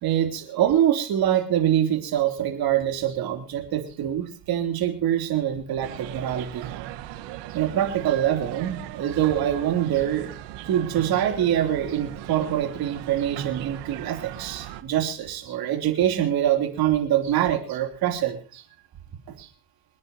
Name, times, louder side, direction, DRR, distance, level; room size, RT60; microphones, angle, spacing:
voice 1, 0.0-6.7 7.5-10.3 10.7-18.6 19.4-19.5, right 11 dB, 55° right, 6 dB, 3.3 m, -24 dB
sound 1, 5.8-14.8, right 13 dB, 80° right, 1.5 m, -38 dB
27.5 x 9.7 x 2.9 m, 0.37 s
cardioid pair, 130°, 42 cm